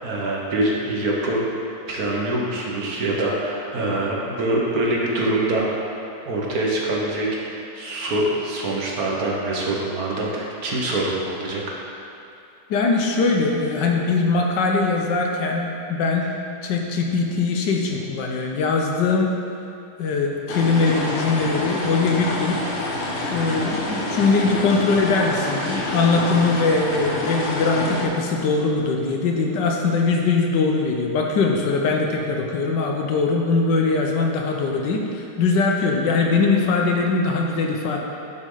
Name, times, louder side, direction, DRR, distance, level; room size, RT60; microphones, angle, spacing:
voice 1, 0.0-1.4 1.9-5.9 6.2-11.6, right 1 dB, 60° right, -3 dB, 1.6 m, -24 dB
voice 2, 12.7-16.3 16.6-19.3 20.0-22.6 23.3-38.0, left 4 dB, 85° left, 1 dB, 1.4 m, -21 dB
sound 1, 20.5-28.0, left 2 dB, 45° left, 1.2 m, -27 dB
11.0 x 6.1 x 3.8 m, 2.6 s
omnidirectional pair, 1.9 m